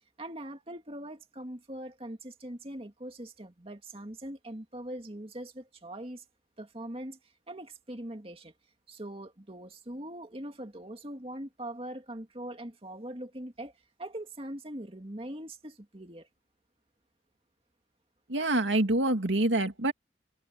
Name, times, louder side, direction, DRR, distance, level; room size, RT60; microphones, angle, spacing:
voice 1, 0.2-6.2 6.6-7.2 7.5-8.5 8.9-13.7 14.0-16.3, right 1 dB, 30° right, 2.3 m, -42 dB
voice 2, 18.3-19.9, right 2 dB, 85° right, 2.4 m, -26 dB
head